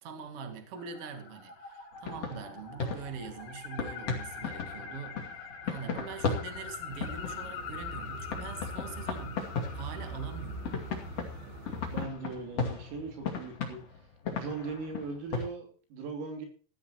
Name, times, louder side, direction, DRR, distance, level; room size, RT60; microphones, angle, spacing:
voice 1, 0.0-10.7, right 6 dB, 45° right, 1.9 m, -43 dB
sound 1, 0.8-12.2, left 6 dB, 65° left, 5.8 m, -45 dB
sound 2, 2.0-8.0 8.3-10.4 10.6-15.5, left 5 dB, 40° left, 2.6 m, -36 dB
sound 3, 6.9-12.1, right 2 dB, 70° right, 2.4 m, -43 dB
voice 2, 11.9-13.8 14.3-16.5, right 4 dB, 85° right, 5.8 m, -39 dB
18.0 x 13.5 x 3.0 m
omnidirectional pair, 5.9 m